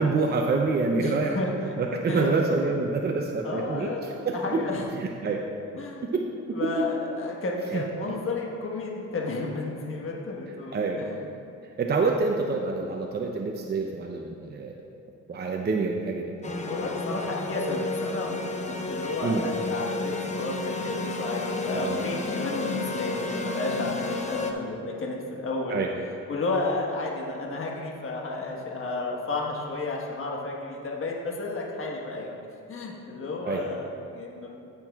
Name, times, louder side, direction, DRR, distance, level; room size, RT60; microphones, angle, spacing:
voice 1, 0.0-1.3 1.8-3.9 4.2-4.6 5.0-5.4 6.1-6.2 6.6-6.9 7.7-8.2 10.7-11.0 11.8-14.7 15.3-16.2 19.2-19.4 21.7-22.0 25.7-25.9 33.4-33.6, right 4 dB, 35° right, 1 dB, 0.6 m, -26 dB
voice 2, 0.9-1.5 2.1-2.3 2.6-2.7 3.4-4.8 5.7-6.0 6.5-11.2 16.6-25.8 26.3-32.3 32.7-34.5, left 3 dB, 45° left, -2 dB, 1.4 m, -32 dB
sound 1, 16.4-24.5, left 2 dB, 25° left, 0.8 m, -31 dB
16.5 x 6.2 x 2.4 m, 2.6 s
cardioid pair, 90°, 30 cm